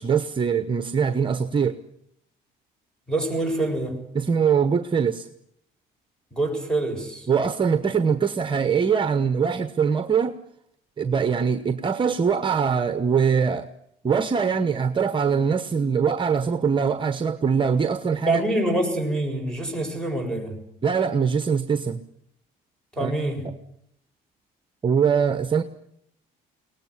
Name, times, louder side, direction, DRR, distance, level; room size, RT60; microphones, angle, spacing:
voice 1, 0.0-1.8 4.1-5.3 7.3-10.3 11.0-13.7 14.0-18.4 20.8-22.0 23.0-23.1 23.4-23.5 24.8-25.6, right 6 dB, 30° right, 10 dB, 1.1 m, -22 dB
voice 2, 3.1-4.0 6.3-7.3 18.3-20.6 23.0-23.4, right 1 dB, 5° left, 6 dB, 7.1 m, -25 dB
22.5 x 19.0 x 9.9 m, 0.76 s
cardioid pair, 110°, 17 cm